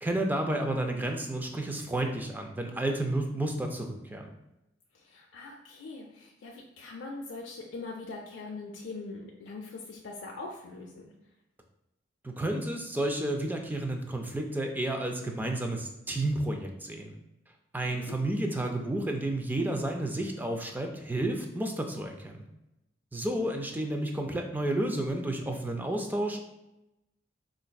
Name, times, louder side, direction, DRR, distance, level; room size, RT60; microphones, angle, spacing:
voice 1, 0.0-4.3 12.2-17.2 17.7-22.4 23.1-26.4, right 1 dB, 10° right, 3 dB, 0.3 m, -31 dB
voice 2, 4.9-11.1 17.8-18.1, left 3 dB, 80° left, -1 dB, 0.4 m, -42 dB
4.1 x 2.5 x 2.2 m, 0.92 s
head